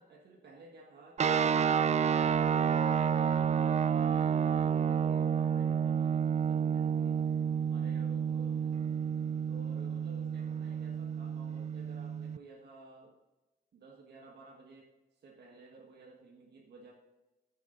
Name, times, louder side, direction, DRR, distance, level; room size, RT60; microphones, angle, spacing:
voice 1, 0.0-7.2 7.6-8.7 9.5-13.2 13.7-16.9, right 3 dB, 80° right, 0 dB, 1.6 m, -54 dB
sound 1, 1.2-12.4, right 7 dB, 45° right, 0.4 m, -30 dB
14.5 x 7.2 x 3.9 m, 1.1 s
cardioid pair, 90°, 17 cm